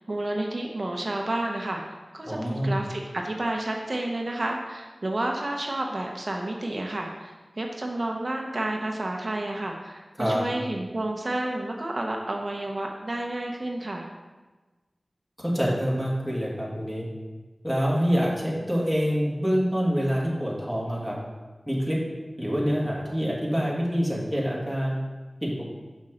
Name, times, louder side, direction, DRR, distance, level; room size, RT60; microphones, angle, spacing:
voice 1, 0.0-1.8 2.1-14.1, right 1 dB, 60° right, 1 dB, 0.7 m, -30 dB
voice 2, 2.3-2.8 10.2-10.4 15.4-17.1 17.6-21.2 21.7-22.0 22.4-25.0 25.4-25.7, equal, 10° left, -4 dB, 1.9 m, -26 dB
6.1 x 5.8 x 3.8 m, 1.2 s
wide cardioid pair, 50°, 0 cm